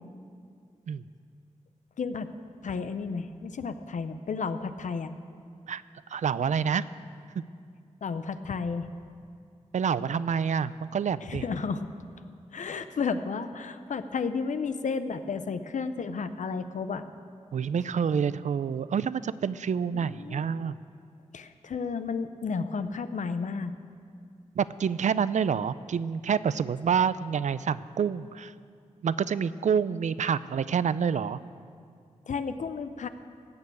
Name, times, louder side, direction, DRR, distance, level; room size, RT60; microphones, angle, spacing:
voice 1, 2.0-2.3 2.6-5.1 8.0-8.9 11.3-11.9 12.5-17.1 19.9-20.7 21.3-23.7 32.3-33.1, left 5 dB, 85° left, 10 dB, 0.7 m, -32 dB
voice 2, 6.1-6.8 9.7-11.4 17.5-20.8 24.6-28.5 29.0-31.4, right 7 dB, 75° right, 16 dB, 0.4 m, -27 dB
17.5 x 6.9 x 8.4 m, 2.3 s
wide cardioid pair, 130°, 12 cm